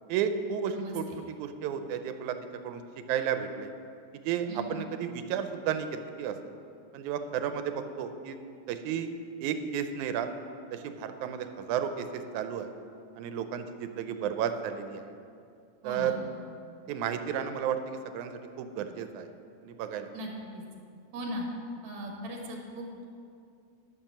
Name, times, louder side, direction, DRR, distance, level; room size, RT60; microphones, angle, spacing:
voice 1, 0.1-2.4 2.6-2.8 3.1-3.7 4.2-6.3 6.9-8.4 8.7-9.1 9.4-10.3 10.7-12.7 13.2-15.0 15.8-16.1 16.9-18.3 18.6-19.3 19.6-20.1, right 8 dB, 85° right, 8 dB, 2.1 m, -32 dB
voice 2, 15.8-16.2 20.1-20.6 21.1-21.4 21.8-23.0, equal, 70° right, 0 dB, 2.8 m, -38 dB
12.0 x 6.6 x 6.0 m, 2.4 s
omnidirectional pair, 3.4 m